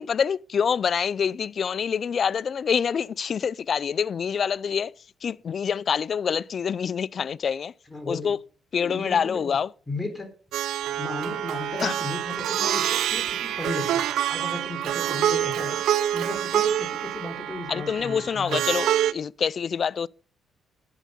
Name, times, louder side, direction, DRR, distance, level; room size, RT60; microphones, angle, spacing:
voice 1, 0.0-4.9 5.2-7.7 8.1-8.4 8.7-9.7 11.8-12.0 17.7-20.1, left 7 dB, 50° left, 0.4 m, -26 dB
voice 2, 7.9-8.3 8.8-9.6 9.9-10.3 10.9-18.6, left 2 dB, 10° left, 3.9 m, -35 dB
Plucked string instrument, 10.5-19.1, right 11 dB, 80° right, 0.6 m, -26 dB
11.0 x 9.4 x 5.3 m
cardioid pair, 90°, 0 cm